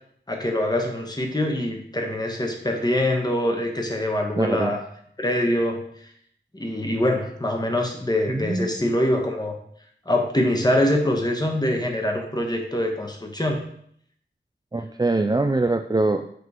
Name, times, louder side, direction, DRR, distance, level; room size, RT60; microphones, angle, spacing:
voice 1, 0.3-4.8 5.2-5.8 6.5-9.6 10.1-13.6, left 1 dB, 20° left, 2 dB, 1.2 m, -24 dB
voice 2, 4.4-4.7 8.3-8.7 14.7-16.2, right 2 dB, 20° right, 6 dB, 0.3 m, -23 dB
7.9 x 3.2 x 4.8 m, 0.66 s
wide cardioid pair, 60°, 19 cm